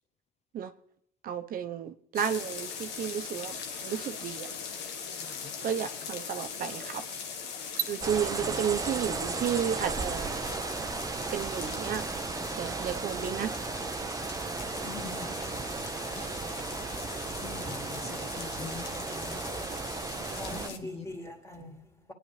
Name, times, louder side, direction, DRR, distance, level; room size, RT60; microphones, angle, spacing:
voice 1, 1.2-3.6 3.8-4.5 5.6-7.0 7.9-10.4 11.3-12.0 12.5-13.5 13.9-14.1, right 8 dB, 55° right, 0.9 m, -32 dB
sound 1, 2.1-20.8, left 6 dB, 85° left, 1.4 m, -40 dB
voice 2, 5.1-5.5 8.4-8.6 14.8-15.5 16.1-16.6 17.4-19.4 20.5-21.0, left 6 dB, 40° left, 0.6 m, -45 dB
sound 2, 8.0-20.7, right 4 dB, 20° right, 0.6 m, -35 dB
voice 3, 17.7-18.2 18.6-18.7 20.3-22.1, left 1 dB, 15° left, 2.5 m, -43 dB
23.0 x 9.9 x 3.3 m
cardioid pair, 110°, 17 cm